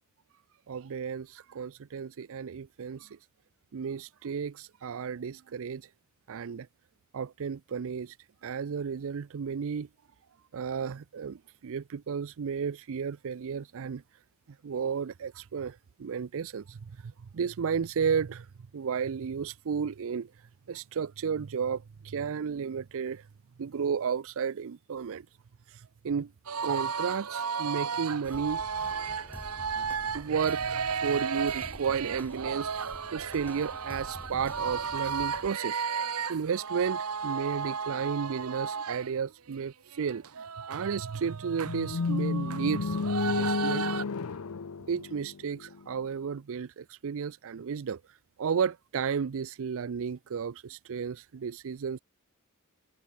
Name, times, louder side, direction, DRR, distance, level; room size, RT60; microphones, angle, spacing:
voice 1, 0.7-3.2 3.7-5.9 6.3-6.7 7.1-8.2 8.4-9.9 10.5-14.0 14.6-18.5 18.7-20.3 20.7-23.2 23.6-25.3 25.7-26.3 26.6-28.6 30.1-35.8 36.3-43.9 44.9-48.0 48.4-52.0, right 6 dB, 65° right, 0.5 m, -33 dB
sound 1, 26.5-39.1 39.5-39.6 39.9-44.0, right 6 dB, 80° right, 1.2 m, -34 dB
sound 2, 28.2-35.5, equal, 10° left, 1.2 m, -47 dB
sound 3, 41.6-45.8, left 4 dB, 70° left, 0.6 m, -31 dB
head